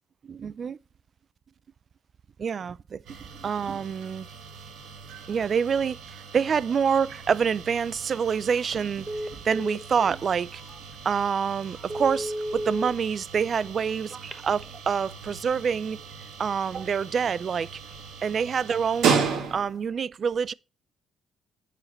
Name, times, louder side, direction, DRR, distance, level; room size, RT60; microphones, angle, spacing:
voice 1, 0.3-0.8 2.4-4.3 5.3-9.1 9.3-10.6 11.0-16.0 16.4-17.8 18.2-19.2 19.5-20.5, right 6 dB, 50° right, 0.3 m, -27 dB
sound 1, 3.0-19.9, right 6 dB, 80° right, 1.7 m, -35 dB
Telephone, 8.5-8.7 9.1-10.1 10.7-10.8 11.2-11.3 11.8-12.9 14.1-14.7, equal, 20° right, 1.0 m, -33 dB
9.4 x 5.0 x 3.1 m
cardioid pair, 90°, 0 cm